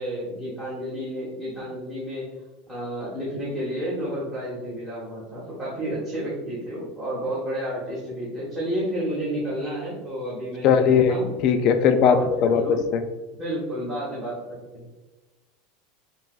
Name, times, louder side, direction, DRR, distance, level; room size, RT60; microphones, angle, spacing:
voice 1, 0.0-2.2 2.7-11.3 12.0-12.8 13.4-14.9, right 1 dB, 10° right, -9 dB, 1.3 m, -31 dB
voice 2, 10.6-11.2 11.4-13.0, left 7 dB, 40° left, 8 dB, 0.4 m, -19 dB
6.9 x 2.4 x 2.4 m, 1.1 s
supercardioid pair, 160°, 0 cm